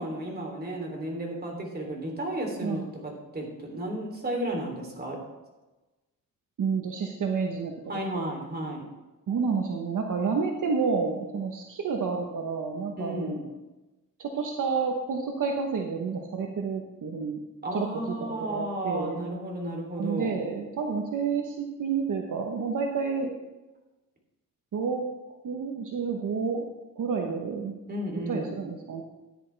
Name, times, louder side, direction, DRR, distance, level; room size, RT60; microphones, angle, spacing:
voice 1, 0.0-5.2 7.9-8.8 13.0-13.5 17.6-20.4 27.9-28.5, right 1 dB, 30° right, 0 dB, 3.1 m, -33 dB
voice 2, 6.6-7.7 8.1-8.3 9.3-13.4 14.2-17.4 17.7-19.3 20.0-23.3 24.7-25.0 25.4-26.7 27.0-27.7 28.3-29.0, right 5 dB, 65° right, 2 dB, 1.1 m, -29 dB
13.5 x 10.5 x 3.4 m, 1.1 s
wide cardioid pair, 120°, 34 cm